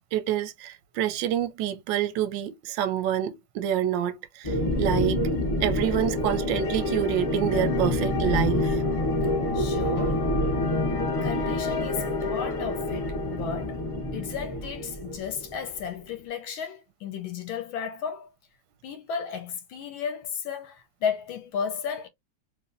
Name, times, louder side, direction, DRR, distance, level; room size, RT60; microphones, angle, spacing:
voice 1, 0.1-5.2 5.6-8.8, right 10 dB, 75° right, 1.2 m, -27 dB
sound 1, 4.4-15.8, left 1 dB, 35° left, 0.5 m, -27 dB
voice 2, 9.5-10.2 11.2-13.8 14.1-18.3 18.8-22.1, left 7 dB, 75° left, 1.4 m, -34 dB
3.3 x 3.0 x 2.5 m
omnidirectional pair, 2.4 m